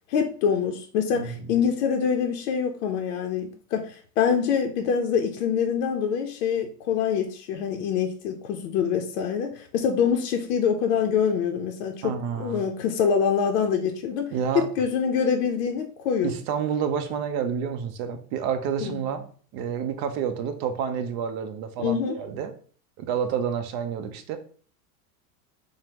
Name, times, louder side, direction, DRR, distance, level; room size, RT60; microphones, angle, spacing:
voice 1, 0.1-16.4 18.8-19.0 21.8-22.2, left 7 dB, 60° left, 3 dB, 0.6 m, -25 dB
voice 2, 1.1-1.5 12.0-12.6 14.3-14.7 16.2-19.2 19.5-22.5 23.0-24.4, right 7 dB, 45° right, 8 dB, 0.5 m, -29 dB
3.3 x 2.1 x 2.9 m, 0.43 s
hypercardioid pair, 120°, 47 cm